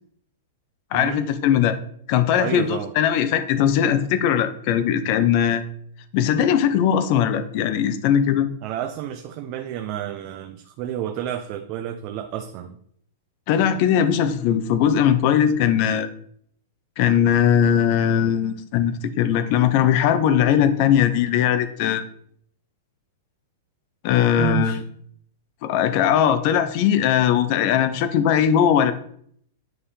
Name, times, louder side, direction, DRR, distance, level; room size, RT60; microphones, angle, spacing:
voice 1, 0.9-1.8 2.1-5.6 6.1-8.5 13.5-16.1 17.0-22.1 24.0-24.8 25.6-28.9, left 9 dB, 40° left, 11 dB, 0.6 m, -19 dB
voice 2, 2.3-2.9 8.6-12.8 24.4-24.8, right 10 dB, 35° right, 7 dB, 0.4 m, -30 dB
9.2 x 3.5 x 4.2 m, 0.65 s
supercardioid pair, 165°, 0 cm